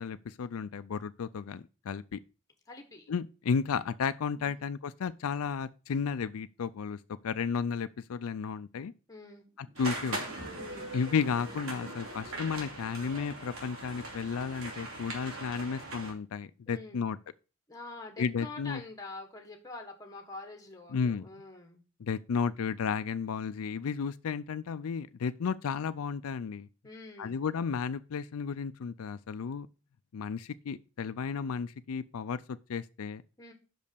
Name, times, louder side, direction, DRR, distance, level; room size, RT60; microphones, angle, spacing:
voice 1, 0.0-2.2 3.1-8.9 9.6-10.2 10.9-17.2 18.2-18.8 20.9-21.3 22.0-26.7 27.2-29.7 30.1-32.4 32.7-33.2, left 6 dB, 85° left, 0.4 m, -33 dB
voice 2, 2.7-3.1 4.3-4.7 9.1-9.5 10.6-10.9 16.7-17.0 17.7-21.8 26.8-27.4 33.4-33.5, left 3 dB, 15° left, 1.4 m, -46 dB
sound 1, 9.6-12.8, equal, 25° right, 0.8 m, -53 dB
sound 2, 9.8-16.1, right 2 dB, 75° right, 2.6 m, -40 dB
6.1 x 5.4 x 6.6 m
head